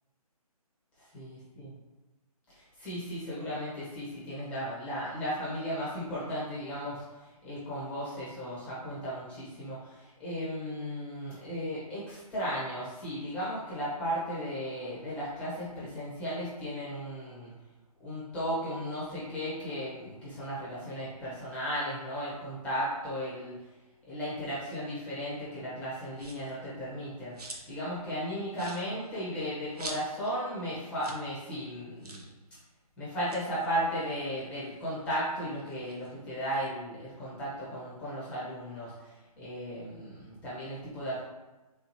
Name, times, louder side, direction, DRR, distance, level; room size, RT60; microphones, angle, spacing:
voice 1, 1.1-1.7 2.5-17.5 18.0-23.5 24.1-32.2 33.0-41.2, equal, 5° left, -8 dB, 0.7 m, -35 dB
sound 1, 26.1-26.6 27.0-27.8 28.1-28.2 28.5-30.4 30.7-30.8 31.0-31.3 31.5-31.6 32.0-32.3 33.1-34.8 35.2-36.7, right 2 dB, 80° right, 0.7 m, -46 dB
3.4 x 2.7 x 3.0 m, 1.1 s
figure-of-eight pair, 155°, 20 cm